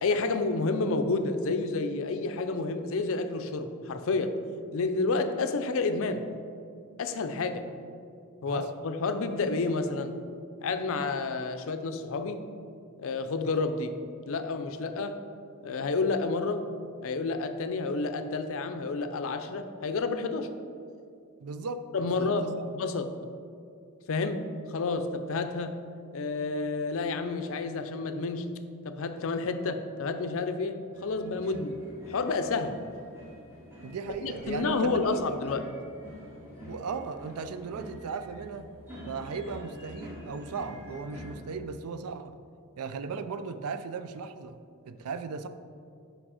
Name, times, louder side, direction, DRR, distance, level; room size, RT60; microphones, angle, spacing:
voice 1, 0.0-4.4 4.7-6.2 7.0-7.7 8.4-10.2 10.6-12.5 13.0-14.0 14.3-15.2 15.6-16.7 17.0-20.5 21.9-22.5 22.7-23.1 24.1-25.8 26.1-28.6 28.8-31.8 32.1-32.8 34.2-35.7, left 3 dB, 65° left, 8 dB, 0.5 m, -30 dB
voice 2, 21.4-22.7 33.8-35.5 36.6-38.7 39.1-42.4 42.8-44.6 44.8-45.5, right 4 dB, 90° right, 10 dB, 0.4 m, -37 dB
sound 1, 30.9-41.4, equal, 10° right, 1.7 m, -46 dB
6.2 x 5.1 x 4.8 m, 2.4 s
head